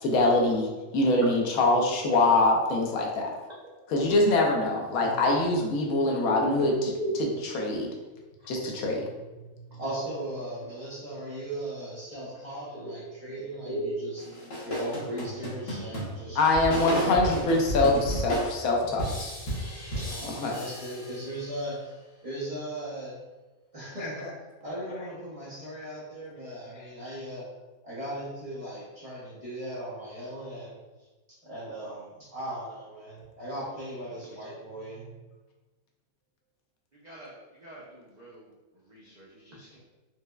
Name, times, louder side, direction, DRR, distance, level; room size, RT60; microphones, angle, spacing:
voice 1, 0.0-3.3 3.9-6.9 7.2-7.9 8.5-9.0 16.4-19.3 20.2-20.6 24.0-24.3, left 2 dB, 75° left, 0 dB, 1.0 m, -24 dB
voice 2, 6.3-6.6 7.0-7.1 13.7-13.9 37.0-37.3 37.6-38.4 38.9-39.8, right 1 dB, 80° right, -7 dB, 0.4 m, -36 dB
voice 3, 8.6-14.2 14.6-16.4 16.9-17.3 19.9-21.8 22.2-23.2 23.7-24.2 24.6-27.4 27.8-31.1 31.4-35.1, right 1 dB, 30° right, -9 dB, 0.7 m, -38 dB
sound 1, 14.2-21.6, equal, 50° left, 0.9 m, -34 dB
4.6 x 2.0 x 2.2 m, 1.2 s
omnidirectional pair, 1.5 m